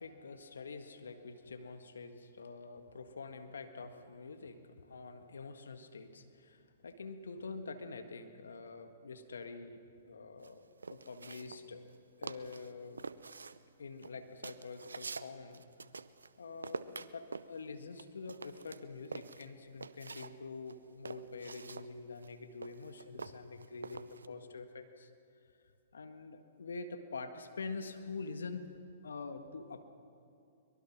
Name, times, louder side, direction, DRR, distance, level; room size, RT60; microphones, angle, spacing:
voice 1, 0.0-10.6 10.9-13.1 13.8-15.6 16.4-25.1 25.9-28.6 29.0-29.8, left 4 dB, 80° left, 7 dB, 1.7 m, -46 dB
sound 1, 10.4-12.0 12.2-12.7 13.0-16.3 16.6-20.3 20.7-24.3, right 4 dB, 90° right, 0.6 m, -46 dB
23.5 x 22.0 x 6.1 m, 2.4 s
hypercardioid pair, 125°, 0 cm